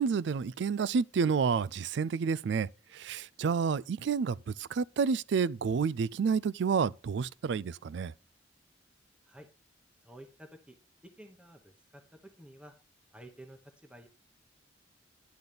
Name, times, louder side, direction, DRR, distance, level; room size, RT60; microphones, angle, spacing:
voice 1, 0.0-8.1, right 6 dB, 65° right, 0.3 m, -30 dB
voice 2, 10.0-10.8 11.2-12.7 13.1-14.1, right 1 dB, 5° right, 0.9 m, -52 dB
10.5 x 4.0 x 6.7 m
head